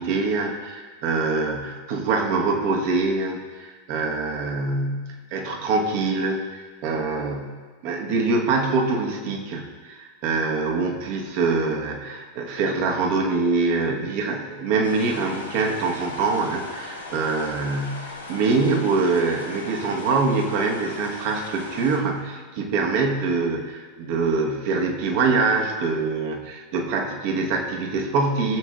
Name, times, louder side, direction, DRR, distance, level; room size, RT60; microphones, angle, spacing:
voice 1, 0.0-6.4 6.8-28.6, right 3 dB, 45° right, 1 dB, 1.2 m, -24 dB
sound 1, 14.8-22.0, left 3 dB, 80° left, 1.4 m, -38 dB
16.5 x 7.2 x 2.4 m, 1.5 s
figure-of-eight pair, 90°, 0 cm